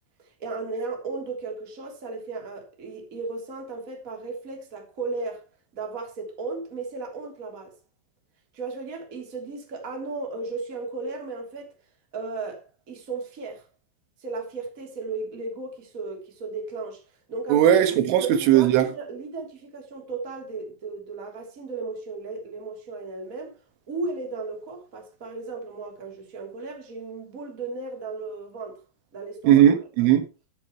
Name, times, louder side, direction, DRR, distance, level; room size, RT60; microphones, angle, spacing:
voice 1, 0.4-5.4 5.7-7.7 8.5-11.7 12.1-13.7 14.2-17.0 17.3-17.6 18.2-23.6 23.9-28.8 29.1-29.6, right 3 dB, 20° right, 2.8 m, -35 dB
voice 2, 17.5-18.9 29.4-30.3, right 11 dB, 90° right, 4.0 m, -18 dB
14.5 x 8.4 x 3.1 m
omnidirectional pair, 5.4 m